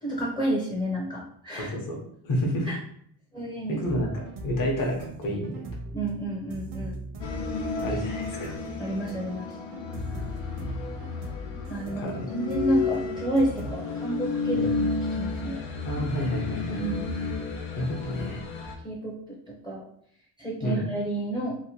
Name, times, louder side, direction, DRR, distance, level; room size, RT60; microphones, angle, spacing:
voice 1, 0.0-1.7 2.7-2.8 3.3-3.8 5.9-7.0 8.8-9.6 11.7-15.6 16.8-17.2 18.8-19.8 20.4-21.6, right 1 dB, 10° left, -4 dB, 0.5 m, -30 dB
voice 2, 1.6-2.0 2.2-2.7 3.7-5.6 7.8-8.5 12.0-12.2 14.6-14.7 15.8-16.8 17.8-18.4 20.6-20.9, equal, 45° left, -1 dB, 0.9 m, -29 dB
sound 1, 3.8-13.7, right 1 dB, 70° right, 0.7 m, -39 dB
sound 2, 7.2-18.7, left 4 dB, 85° left, 0.7 m, -32 dB
2.9 x 2.2 x 2.8 m, 0.68 s
cardioid pair, 120°, 43 cm